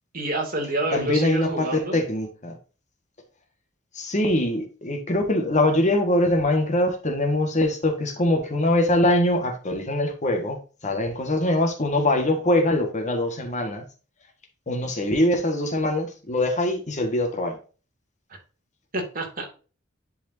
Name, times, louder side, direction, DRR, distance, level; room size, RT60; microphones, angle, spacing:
voice 1, 0.1-2.0 18.9-19.4, right 1 dB, 45° right, 2 dB, 2.6 m, -28 dB
voice 2, 0.9-2.6 3.9-10.6 10.8-13.8 14.7-17.6, left 1 dB, 35° left, 5 dB, 1.6 m, -23 dB
11.0 x 4.8 x 2.7 m, 0.35 s
head